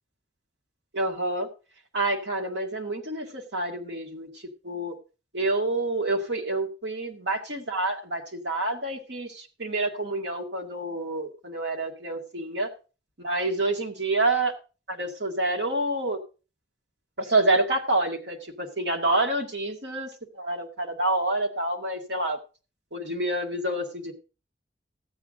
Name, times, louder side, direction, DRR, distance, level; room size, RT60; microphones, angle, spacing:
voice 1, 0.9-1.5 1.9-4.3 4.6-4.9 5.3-12.7 13.2-14.5 14.9-16.2 17.2-20.1 20.4-22.4 22.9-24.1, right 2 dB, 75° right, 3 dB, 2.1 m, -28 dB
14.5 x 8.3 x 3.8 m, 0.33 s
head